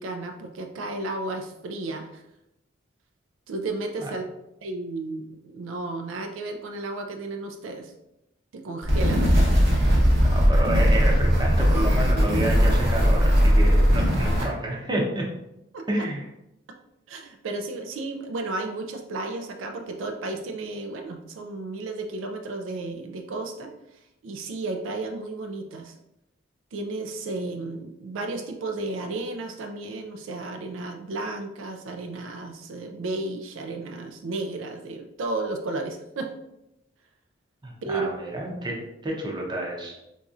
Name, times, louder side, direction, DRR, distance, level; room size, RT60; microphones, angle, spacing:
voice 1, 0.0-2.1 3.5-4.2 4.6-7.9 8.5-9.4 15.7-16.1 17.1-23.7 24.2-25.9 26.7-36.3 37.8-38.1, right 2 dB, 85° right, 5 dB, 0.4 m, -33 dB
sound 1, 8.8-14.4, equal, 60° right, 0.8 m, -19 dB
voice 2, 10.1-15.3 15.9-16.2 37.6-40.0, right 1 dB, 25° right, -1 dB, 0.6 m, -29 dB
4.0 x 2.6 x 2.4 m, 0.86 s
head